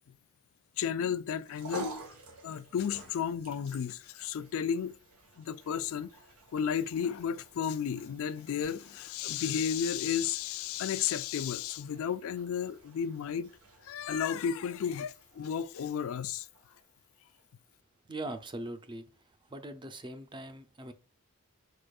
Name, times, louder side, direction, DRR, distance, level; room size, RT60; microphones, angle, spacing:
voice 1, 0.8-1.9 2.4-5.0 5.4-6.1 6.5-13.5 13.8-16.5, left 8 dB, 70° left, 0.4 m, -33 dB
sound 1, 1.3-17.8, right 2 dB, 90° right, 1.3 m, -51 dB
voice 2, 18.1-19.0 19.5-20.9, right 1 dB, 20° right, 0.6 m, -41 dB
4.9 x 4.3 x 2.3 m
head